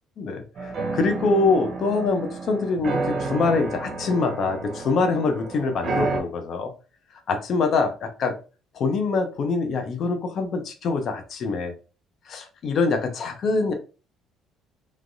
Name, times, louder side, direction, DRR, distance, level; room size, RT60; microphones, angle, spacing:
voice 1, 0.2-6.7 7.3-8.4 8.7-11.7 12.3-13.7, left 4 dB, 45° left, 5 dB, 0.5 m, -24 dB
sound 1, 0.6-6.2, right 3 dB, 40° right, 0.7 m, -30 dB
3.2 x 2.3 x 2.5 m, 0.34 s
cardioid pair, 155°, 0 cm